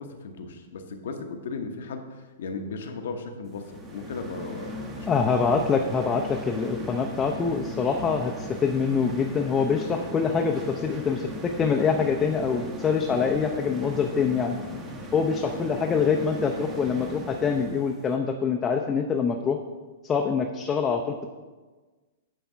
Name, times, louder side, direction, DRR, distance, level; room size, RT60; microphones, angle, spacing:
voice 1, 0.0-5.4, left 4 dB, 65° left, 5 dB, 1.0 m, -36 dB
sound 1, 3.5-18.1, equal, 25° right, 1.1 m, -38 dB
voice 2, 5.1-14.6 15.1-19.6 20.0-21.1, left 5 dB, 20° left, 2 dB, 0.6 m, -25 dB
9.4 x 3.5 x 5.6 m, 1.3 s
hypercardioid pair, 110°, 0 cm